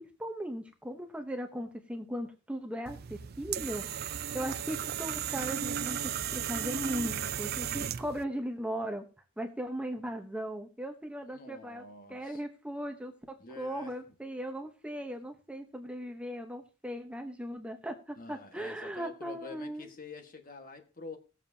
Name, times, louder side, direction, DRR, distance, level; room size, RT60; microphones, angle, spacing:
voice 1, 0.0-9.1 9.4-11.8 12.1-19.9, equal, 5° right, 0.9 m, -38 dB
sound 1, 2.9-8.2, right 9 dB, 50° right, 0.5 m, -35 dB
voice 2, 11.2-12.4 13.4-13.9 18.2-21.2, left 3 dB, 45° left, 1.5 m, -47 dB
18.5 x 7.2 x 2.8 m
head